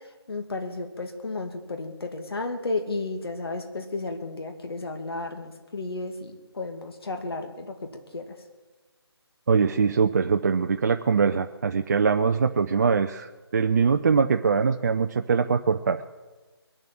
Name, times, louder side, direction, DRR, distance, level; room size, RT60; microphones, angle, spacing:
voice 1, 0.3-7.8 8.1-8.3, left 3 dB, 65° left, 5 dB, 2.4 m, -33 dB
voice 2, 9.5-16.0, right 5 dB, 40° right, 7 dB, 0.5 m, -22 dB
22.0 x 7.3 x 7.6 m, 1.3 s
figure-of-eight pair, 160°, 14 cm